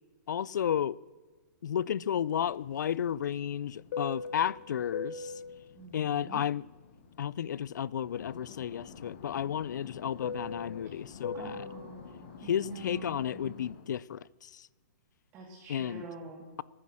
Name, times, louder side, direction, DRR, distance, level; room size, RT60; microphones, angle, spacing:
voice 1, 0.3-1.0 1.6-5.3 5.9-6.6 7.2-11.7 12.4-14.7 15.7-16.0, left 9 dB, 85° left, 0.4 m, -32 dB
Fixed-wing aircraft airplane, 2.3-7.7 8.0-13.9, left 5 dB, 35° left, 1.1 m, -43 dB
voice 2, 5.7-6.4 11.3-13.6 15.3-16.5, right 1 dB, 15° right, 1.4 m, -46 dB
15.0 x 9.7 x 6.3 m
hypercardioid pair, 180°, 10 cm